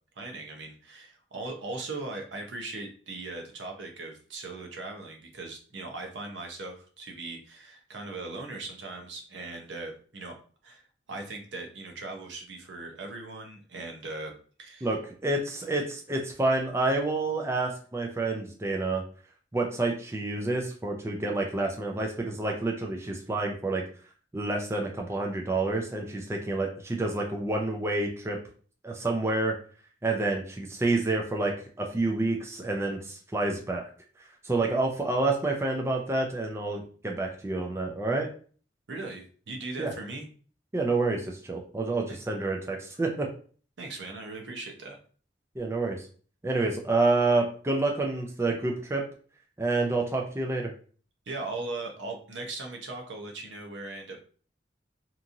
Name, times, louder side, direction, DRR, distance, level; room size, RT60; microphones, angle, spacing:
voice 1, 0.2-10.4 10.6-14.3 14.6-14.9 38.9-40.3 43.8-45.0 51.3-54.2, right 2 dB, 80° right, 3 dB, 0.7 m, -39 dB
voice 2, 14.8-19.0 19.5-23.8 24.3-28.4 28.8-29.6 30.0-33.8 34.4-38.3 39.8-39.9 40.7-43.3 45.6-46.0 46.4-49.0 49.6-50.7, right 2 dB, 15° right, 1 dB, 0.4 m, -28 dB
2.9 x 2.4 x 2.6 m, 0.42 s
head